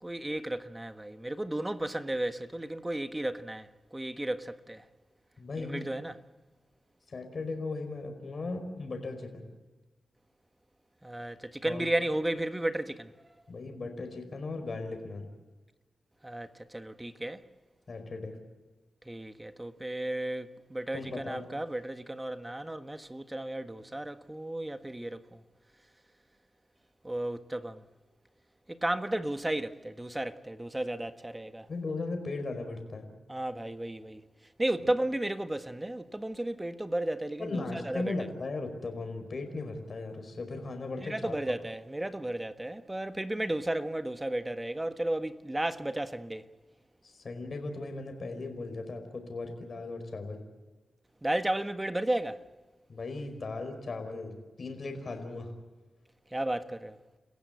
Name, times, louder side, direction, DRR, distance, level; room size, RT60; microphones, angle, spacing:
voice 1, 0.0-4.8 5.5-6.2 11.0-13.1 16.2-17.4 19.1-25.4 27.0-27.8 28.7-31.7 33.3-34.2 34.6-38.1 41.0-46.4 51.2-52.4 56.3-57.0, right 1 dB, 15° right, 1.4 m, -34 dB
voice 2, 5.4-5.8 7.1-9.4 11.6-11.9 13.5-15.3 17.9-18.4 20.9-21.4 31.7-33.1 37.4-41.4 47.0-50.4 52.9-55.5, left 3 dB, 55° left, 4.9 m, -37 dB
30.0 x 15.5 x 8.1 m
cardioid pair, 65°, 0 cm